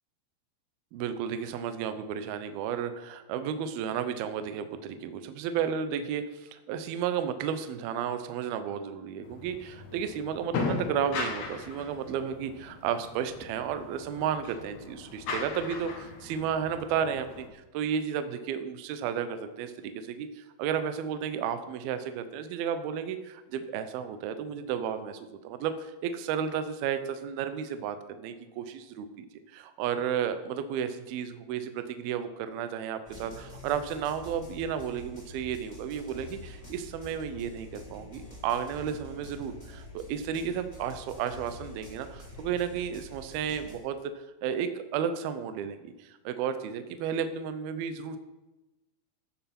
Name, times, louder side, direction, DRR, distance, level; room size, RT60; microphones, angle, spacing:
voice 1, 0.9-29.3 29.5-44.1 44.4-48.2, right 8 dB, 80° right, 9 dB, 2.2 m, -33 dB
sound 1, 9.2-17.5, left 3 dB, 75° left, 1.6 m, -38 dB
sound 2, 33.0-43.8, left 1 dB, 10° left, 2.7 m, -47 dB
14.5 x 9.4 x 4.4 m, 1.1 s
omnidirectional pair, 5.5 m